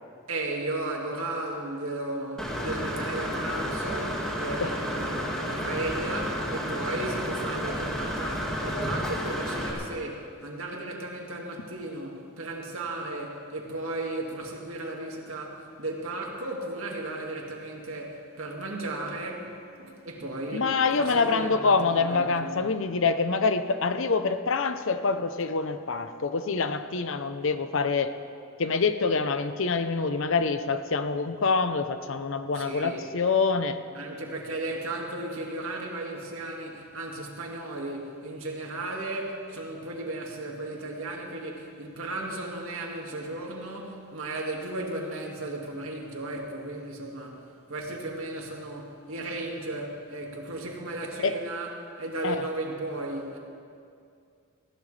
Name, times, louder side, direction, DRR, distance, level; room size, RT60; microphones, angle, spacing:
voice 1, 0.3-22.6 32.5-33.1 33.9-47.4 47.7-53.4, right 2 dB, 85° right, 0 dB, 2.1 m, -35 dB
Engine / Mechanisms, 2.4-9.7, equal, 5° left, 2.0 m, -31 dB
voice 2, 20.5-28.1 28.6-33.8 51.2-51.3 52.2-52.4, left 4 dB, 65° left, 10 dB, 0.7 m, -26 dB
19.5 x 15.0 x 3.3 m, 2.4 s
head